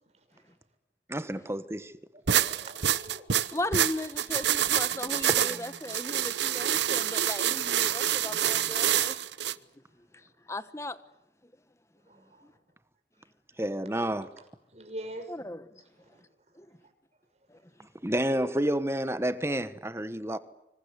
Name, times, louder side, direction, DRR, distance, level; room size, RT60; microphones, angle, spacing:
voice 1, 1.1-1.9 5.3-5.6 13.6-14.3 18.0-20.4, right 1 dB, 15° right, 1.3 m, -30 dB
voice 2, 2.3-3.2 12.1-12.5 14.7-15.3 16.0-16.2 16.8-16.9, right 1 dB, 35° right, 6.0 m, -43 dB
sound 1, 2.3-9.5, right 10 dB, 75° right, 0.9 m, -27 dB
voice 3, 3.5-9.2 10.5-11.0 15.3-15.6 16.6-16.7 17.5-17.6, left 1 dB, 15° left, 1.3 m, -36 dB
26.5 x 26.0 x 8.3 m
head